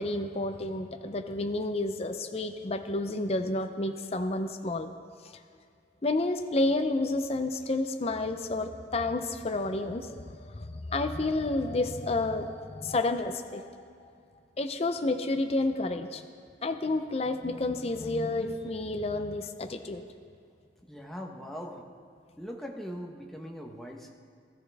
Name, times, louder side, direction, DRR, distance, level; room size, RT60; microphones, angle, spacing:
voice 1, 0.0-4.9 6.0-13.8 14.6-16.2 16.6-20.1, left 2 dB, 35° left, 6 dB, 0.6 m, -30 dB
voice 2, 20.9-21.8 22.4-24.1, equal, ahead, 0 dB, 1.1 m, -40 dB
19.5 x 13.5 x 3.5 m, 2.3 s
head